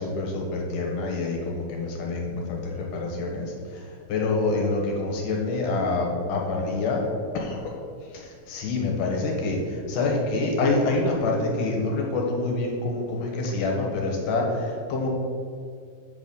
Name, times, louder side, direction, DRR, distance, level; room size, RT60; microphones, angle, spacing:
voice 1, 0.0-7.1 7.3-7.7 8.1-15.1, left 3 dB, 75° left, 0 dB, 2.8 m, -27 dB
8.0 x 4.1 x 6.9 m, 2.2 s
omnidirectional pair, 3.8 m